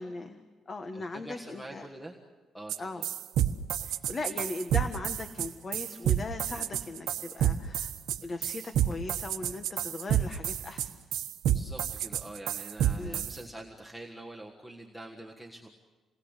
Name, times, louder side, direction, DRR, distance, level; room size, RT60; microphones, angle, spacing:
voice 1, 0.0-1.9 2.8-3.1 3.8-7.9 8.2-10.9 13.0-13.2, left 3 dB, 25° left, 7 dB, 1.2 m, -39 dB
voice 2, 0.9-2.2 2.5-3.0 11.4-15.7, right 1 dB, ahead, 1 dB, 1.6 m, -45 dB
sound 1, 2.7-2.8 3.0-13.3, right 10 dB, 85° right, 1.2 m, -29 dB
28.5 x 20.5 x 8.2 m, 1.4 s
cardioid pair, 165°, 0 cm